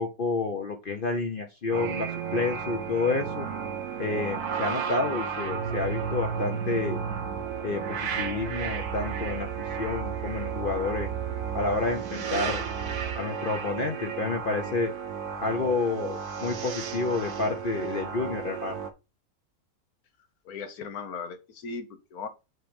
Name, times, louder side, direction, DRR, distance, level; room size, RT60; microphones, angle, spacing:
voice 1, 0.0-3.5 4.0-7.0 7.6-9.5 9.8-11.1 11.5-12.6 13.2-14.9 15.4-18.8, left 3 dB, 45° left, 0.8 m, -29 dB
sound 1, 1.7-18.9, right 7 dB, 85° right, 1.5 m, -33 dB
sound 2, 5.6-13.2, right 9 dB, 70° right, 1.1 m, -38 dB
voice 2, 20.4-22.3, left 5 dB, 80° left, 1.5 m, -37 dB
7.7 x 3.1 x 5.1 m
omnidirectional pair, 1.6 m